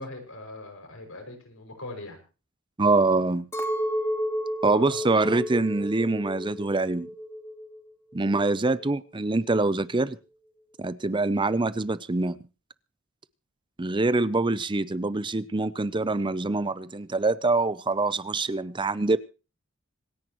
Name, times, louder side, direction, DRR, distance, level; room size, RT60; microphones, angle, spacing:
voice 1, 0.0-2.2 4.7-5.0 5.3-5.4, left 2 dB, 75° left, 6.2 m, -40 dB
voice 2, 2.8-3.5 4.6-7.1 8.1-10.2 10.8-12.4 13.8-19.2, right 3 dB, 25° right, 0.6 m, -25 dB
Chink clink, 3.5-7.9 8.1-9.0, equal, 15° left, 2.4 m, -32 dB
26.5 x 10.5 x 3.1 m
head